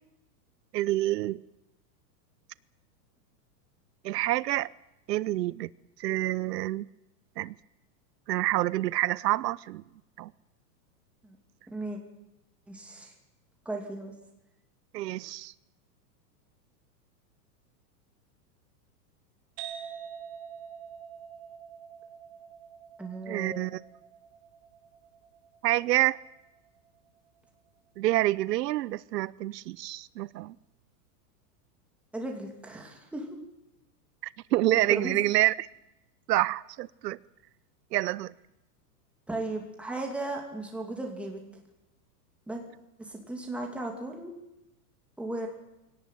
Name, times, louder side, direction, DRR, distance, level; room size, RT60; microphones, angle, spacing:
voice 1, 0.7-1.4 4.0-4.7 5.1-5.7 6.0-6.9 7.4-7.6 8.3-9.8 10.2-10.3 14.9-15.5 23.3-23.7 25.6-26.2 28.0-30.5 34.5-35.7 36.3-37.2 37.9-38.3, right 16 dB, 85° right, 0.8 m, -27 dB
voice 2, 11.7-12.0 12.7-13.1 13.6-14.1 23.0-23.7 32.1-33.4 34.9-35.3 39.3-41.4 42.5-42.6 43.0-44.3 45.2-45.5, right 2 dB, ahead, 2.6 m, -36 dB
sound 1, 19.6-27.0, right 8 dB, 35° right, 3.7 m, -46 dB
22.0 x 18.0 x 9.2 m
supercardioid pair, 175°, 48 cm